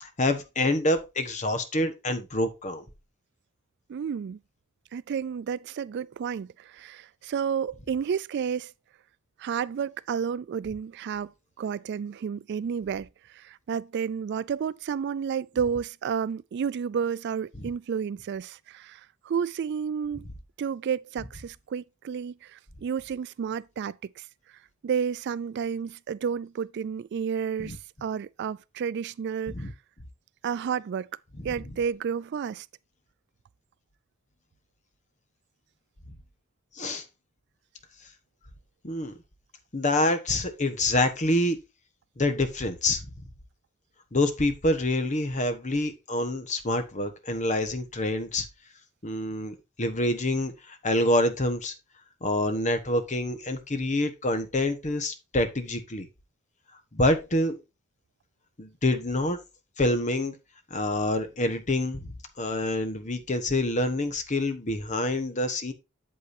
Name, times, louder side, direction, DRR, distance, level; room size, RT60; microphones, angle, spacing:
voice 1, 0.0-2.8 27.6-27.8 29.5-29.7 36.8-37.0 38.8-39.1 39.7-41.6 42.2-43.0 44.1-48.5 49.0-51.7 52.2-56.1 56.9-57.6 58.6-59.4 59.8-60.3 60.7-65.7, left 1 dB, 35° left, 1.2 m, -27 dB
voice 2, 3.9-4.4 4.9-8.7 9.4-11.3 11.6-20.3 20.6-24.3 24.8-29.7 30.4-31.1 31.4-32.7, right 7 dB, 55° right, 0.3 m, -31 dB
8.3 x 7.8 x 2.7 m
head